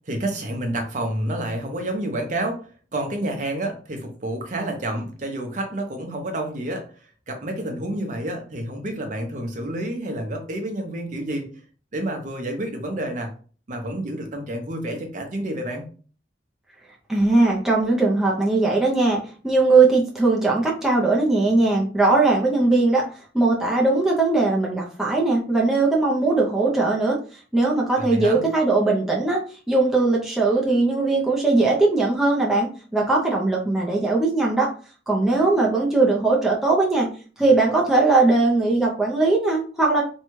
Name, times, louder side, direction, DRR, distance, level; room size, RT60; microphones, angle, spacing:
voice 1, 0.1-2.6 2.9-6.9 7.3-11.5 11.9-13.3 13.7-15.9 28.0-28.4, right 1 dB, 45° right, 4 dB, 0.6 m, -29 dB
voice 2, 17.1-23.1 23.3-27.2 27.5-29.4 29.7-34.7 35.1-37.1 37.4-40.0, right 3 dB, 5° right, -4 dB, 0.5 m, -19 dB
2.6 x 2.2 x 3.0 m, 0.40 s
head